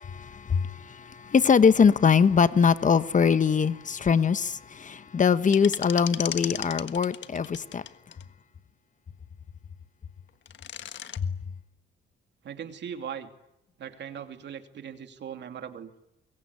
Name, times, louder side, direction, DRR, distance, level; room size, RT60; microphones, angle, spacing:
voice 1, 0.0-7.8, left 6 dB, 40° left, 1.2 m, -22 dB
sound 1, 5.4-8.2 10.3-11.2, left 10 dB, 65° left, 1.5 m, -36 dB
voice 2, 12.4-13.3 13.8-15.9, right 8 dB, 65° right, 2.9 m, -39 dB
25.0 x 22.5 x 9.8 m
cardioid pair, 90°, 20 cm